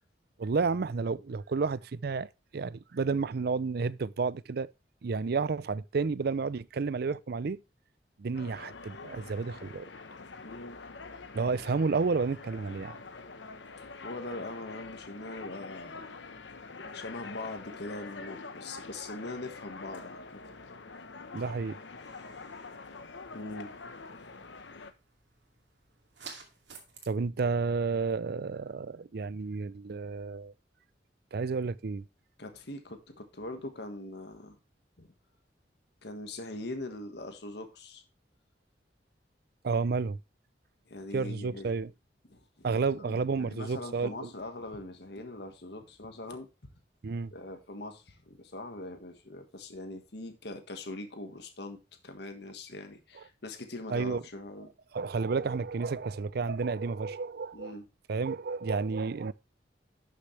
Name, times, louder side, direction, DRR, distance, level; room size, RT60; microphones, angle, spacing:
voice 1, 0.4-4.7 5.0-7.6 8.2-9.9 11.3-13.0 21.3-21.8 27.1-30.5 31.3-32.0 39.6-40.2 41.1-41.9 42.6-44.3 47.0-47.3 53.9-54.2 54.9-57.8 58.1-59.3, right 4 dB, 60° right, 0.5 m, -31 dB
sound 1, 8.3-24.9, left 4 dB, 90° left, 1.0 m, -45 dB
voice 2, 10.4-10.8 14.0-16.1 16.9-20.4 23.3-23.7 32.4-34.6 35.0-35.1 36.0-38.0 40.9-41.7 42.3-46.5 47.3-51.8 52.0-54.7 57.5-57.8, left 2 dB, 65° left, 1.6 m, -42 dB
sound 2, 22.0-27.1, right 5 dB, 80° right, 2.4 m, -53 dB
11.5 x 6.5 x 3.3 m
head